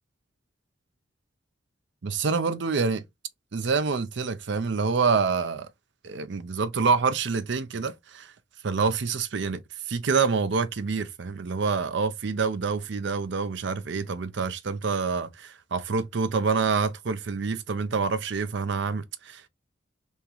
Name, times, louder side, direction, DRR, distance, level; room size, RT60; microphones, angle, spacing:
voice 1, 2.0-3.0 3.5-5.7 6.0-8.3 8.6-19.5, right 5 dB, 65° right, 0.6 m, -27 dB
3.6 x 2.9 x 3.0 m
head